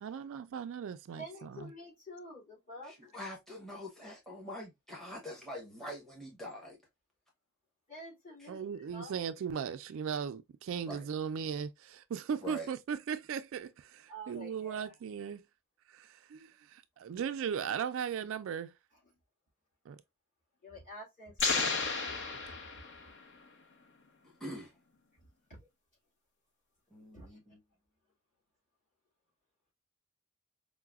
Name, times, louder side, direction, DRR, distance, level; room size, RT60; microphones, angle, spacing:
voice 1, 0.0-1.7 8.5-15.4 15.9-16.7 17.0-18.7 19.9-20.0 22.5-22.6, right 7 dB, 60° right, 0.3 m, -37 dB
voice 2, 1.2-3.1 7.9-9.1 14.1-14.9 20.6-21.7 22.1-22.2 22.4-22.6 25.5-25.6 27.1-27.4, equal, 35° left, 1.9 m, -48 dB
voice 3, 2.8-6.8 8.4-8.5 10.9-11.0 12.4-12.7 24.4-24.7 26.9-27.6, equal, ahead, 0.8 m, -44 dB
sound 1, 21.4-23.3, left 4 dB, 55° left, 0.8 m, -33 dB
4.7 x 2.1 x 2.2 m
head